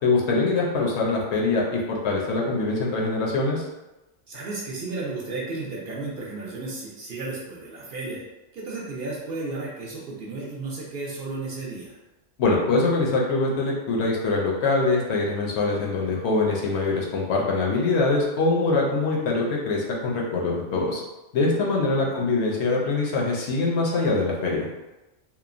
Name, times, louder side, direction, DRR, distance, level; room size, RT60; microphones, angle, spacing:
voice 1, 0.0-3.7 12.4-21.0 21.3-24.7, left 3 dB, 70° left, -2 dB, 0.8 m, -23 dB
voice 2, 4.3-8.2 8.5-11.9 21.9-22.2, right 3 dB, 60° right, -4 dB, 0.7 m, -33 dB
2.9 x 2.0 x 2.4 m, 1.0 s
omnidirectional pair, 1.2 m